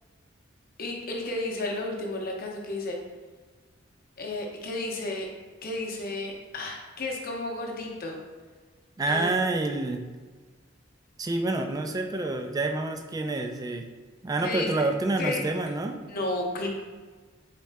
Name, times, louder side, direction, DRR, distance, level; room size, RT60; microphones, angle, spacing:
voice 1, 0.8-3.0 4.2-5.3 5.6-8.2 9.1-9.3 14.4-14.7 15.2-15.4 16.1-16.7, left 2 dB, 50° left, 0 dB, 0.7 m, -32 dB
voice 2, 9.0-10.0 11.2-13.9 14.2-16.0, right 2 dB, 20° right, 5 dB, 0.3 m, -28 dB
4.1 x 3.6 x 3.3 m, 1.4 s
head